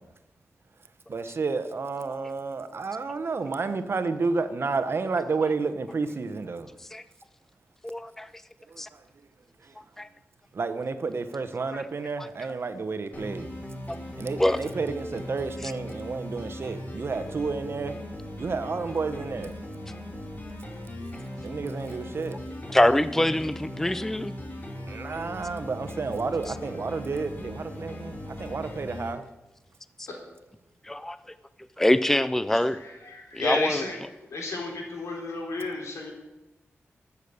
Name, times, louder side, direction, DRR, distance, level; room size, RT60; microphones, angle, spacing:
voice 1, 1.1-6.7 8.7-8.8 10.5-13.5 14.2-18.0 18.4-19.5 21.4-22.4 24.9-29.2, right 4 dB, 55° right, 1.0 m, -31 dB
voice 2, 7.8-8.3 8.8-8.9 10.0-10.1 11.7-11.8 12.2-12.3 13.9-14.0 14.4-14.6 15.6-15.7 22.7-24.3 30.0-30.1 30.8-31.2 31.8-32.8 33.3-33.8, left 1 dB, 5° left, 0.4 m, -24 dB
sound 1, 13.1-29.1, left 1 dB, 40° left, 2.8 m, -39 dB
voice 3, 32.8-34.0 34.3-36.1, left 3 dB, 90° left, 3.6 m, -32 dB
13.0 x 8.3 x 7.0 m
wide cardioid pair, 90°, 5 cm